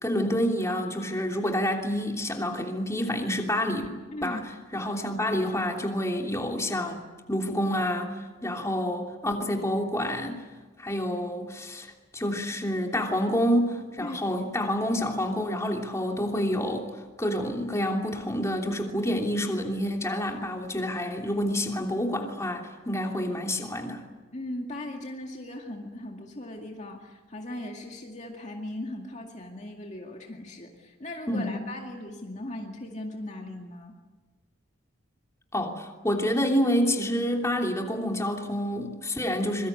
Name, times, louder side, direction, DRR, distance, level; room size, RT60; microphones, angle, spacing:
voice 1, 0.0-3.9 4.2-4.4 4.7-7.0 7.3-10.4 10.8-16.9 17.2-24.0 31.3-31.6 35.5-39.7, equal, 15° left, 2 dB, 3.0 m, -28 dB
voice 2, 24.3-33.9, left 1 dB, 35° left, 1 dB, 2.2 m, -38 dB
26.0 x 23.5 x 8.5 m, 1.3 s
head